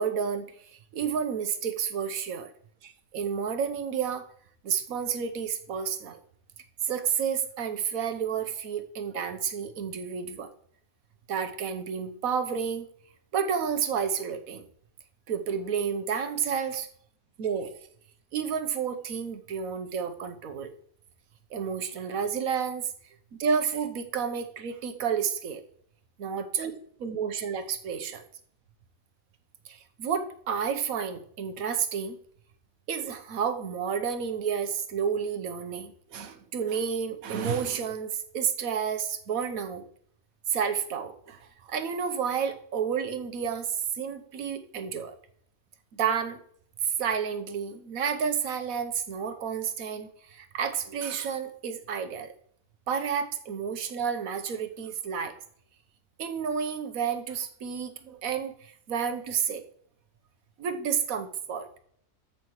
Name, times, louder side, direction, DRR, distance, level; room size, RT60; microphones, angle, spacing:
voice 1, 0.0-2.5 2.8-4.3 4.6-6.2 6.8-10.5 11.3-12.9 13.3-14.6 15.3-16.9 17.4-17.7 18.3-20.7 21.5-22.9 23.4-25.6 26.2-26.7 27.0-28.2 29.7-32.2 32.9-39.8 40.5-45.1 45.9-46.4 46.8-52.3 52.9-55.3 56.2-59.6 60.6-61.7, right 7 dB, 80° right, 8 dB, 1.3 m, -30 dB
13.5 x 5.9 x 3.1 m, 0.63 s
omnidirectional pair, 1.5 m